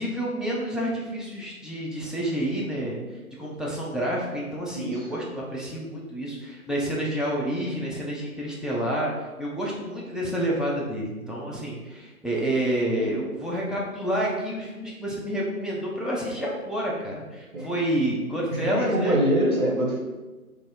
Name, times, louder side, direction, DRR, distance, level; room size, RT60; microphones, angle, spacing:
voice 1, 0.0-3.0 3.4-9.1 9.4-19.2, right 1 dB, ahead, -5 dB, 0.4 m, -29 dB
voice 2, 18.5-20.0, right 1 dB, 70° right, -3 dB, 1.1 m, -24 dB
3.7 x 2.0 x 3.4 m, 1.2 s
figure-of-eight pair, 165°, 45 cm